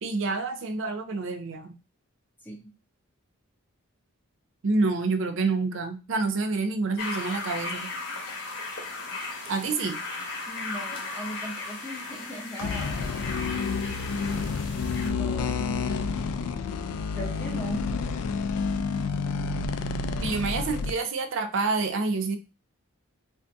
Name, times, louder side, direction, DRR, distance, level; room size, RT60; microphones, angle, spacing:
voice 1, 0.0-1.7 4.6-7.9 9.5-10.0 20.2-22.4, right 3 dB, 60° right, 8 dB, 0.4 m, -28 dB
sound 1, 7.0-15.1, left 3 dB, 50° left, 0.9 m, -36 dB
voice 2, 10.5-13.4 15.0-15.6 17.1-17.8, equal, 10° left, -2 dB, 0.6 m, -38 dB
sound 2, 12.6-20.9, left 4 dB, 80° left, 0.3 m, -29 dB
2.6 x 2.5 x 3.4 m, 0.30 s
head